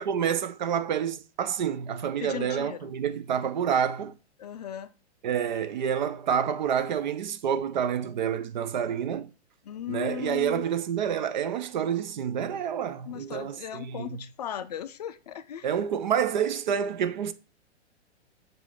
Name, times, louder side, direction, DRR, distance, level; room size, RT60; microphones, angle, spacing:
voice 1, 0.0-4.2 5.2-9.3 9.9-14.2 15.6-17.3, right 8 dB, 45° right, 0.4 m, -28 dB
voice 2, 2.2-2.9 4.4-4.9 9.6-10.6 13.1-15.7, left 11 dB, 35° left, 0.4 m, -37 dB
6.6 x 2.6 x 5.6 m
figure-of-eight pair, 110°, 34 cm